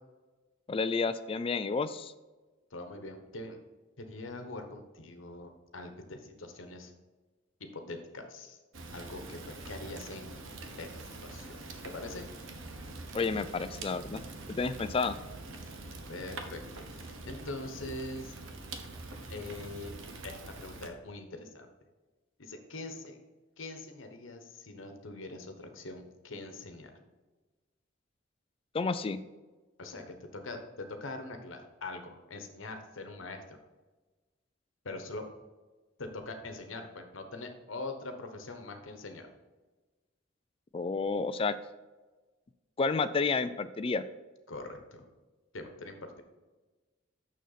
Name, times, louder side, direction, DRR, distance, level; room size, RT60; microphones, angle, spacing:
voice 1, 0.7-2.1 13.1-14.2 14.5-15.1 28.7-29.2 40.7-41.5 42.8-44.0, left 4 dB, 30° left, 11 dB, 0.3 m, -30 dB
voice 2, 2.7-3.6 4.0-6.9 7.7-8.6 8.9-10.4 10.8-10.9 11.2-11.6 11.8-12.2 16.1-18.3 19.3-19.9 20.2-21.7 22.4-23.2 23.6-26.9 29.8-30.0 30.3-33.6 34.8-35.2 36.0-39.3 44.5-45.0 45.5-46.2, left 2 dB, 85° left, 6 dB, 1.1 m, -43 dB
Fire, 8.7-20.9, right 2 dB, 90° right, 1.0 m, -44 dB
6.5 x 6.4 x 4.1 m, 1.2 s
head